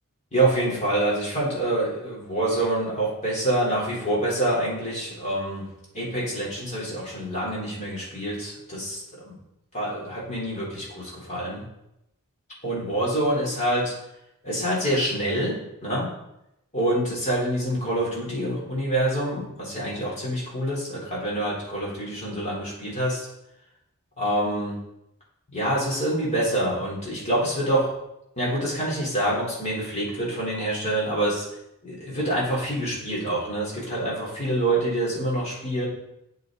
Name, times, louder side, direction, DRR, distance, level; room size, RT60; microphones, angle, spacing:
voice 1, 0.3-5.7 5.9-9.4 9.7-11.6 12.6-13.9 14.4-16.1 16.7-23.3 24.2-24.8 25.5-27.9 28.4-31.5 31.8-35.9, right 1 dB, 30° left, -5 dB, 3.7 m, -26 dB
8.3 x 8.2 x 4.0 m, 0.84 s
head